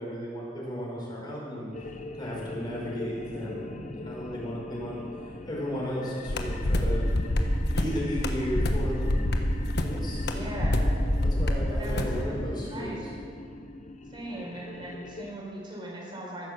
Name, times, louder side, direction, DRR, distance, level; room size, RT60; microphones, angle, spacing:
voice 1, 0.0-5.0 5.4-7.1 7.6-9.2 9.8-10.6 11.2-13.1, equal, 25° left, -4 dB, 4.7 m, -35 dB
sound 1, 1.7-15.3, left 2 dB, 40° left, 0.7 m, -41 dB
sound 2, 6.3-12.2, left 1 dB, 60° left, 1.2 m, -26 dB
voice 2, 10.2-10.8 11.7-13.0 14.1-16.5, right 1 dB, 25° right, -3 dB, 3.9 m, -39 dB
14.5 x 11.0 x 6.6 m, 2.3 s
head